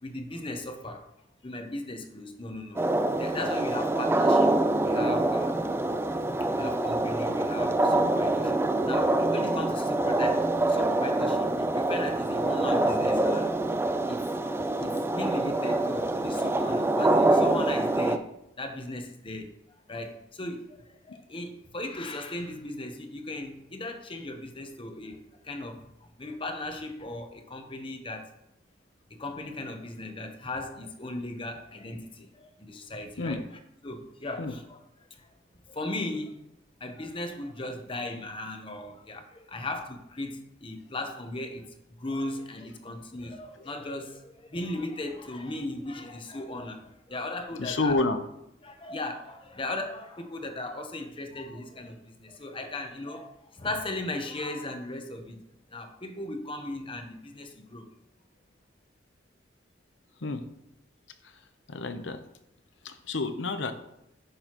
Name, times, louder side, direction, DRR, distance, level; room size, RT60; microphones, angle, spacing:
voice 1, 0.0-1.1 1.4-2.9 3.1-5.6 6.4-13.5 14.1-14.3 14.8-18.3 18.6-19.5 19.9-25.8 26.2-28.3 29.1-33.4 33.8-34.8 35.1-35.3 35.7-36.5 36.8-41.7 42.0-48.0 48.6-55.4 55.7-57.9, left 2 dB, 30° left, 6 dB, 0.9 m, -37 dB
sound 1, 2.8-18.2, right 2 dB, 15° right, 0.4 m, -25 dB
voice 2, 47.6-48.2 60.2-60.5 61.2-61.4 61.7-62.2 62.8-63.7, left 3 dB, 85° left, 9 dB, 0.8 m, -29 dB
10.5 x 6.4 x 3.0 m, 0.82 s
head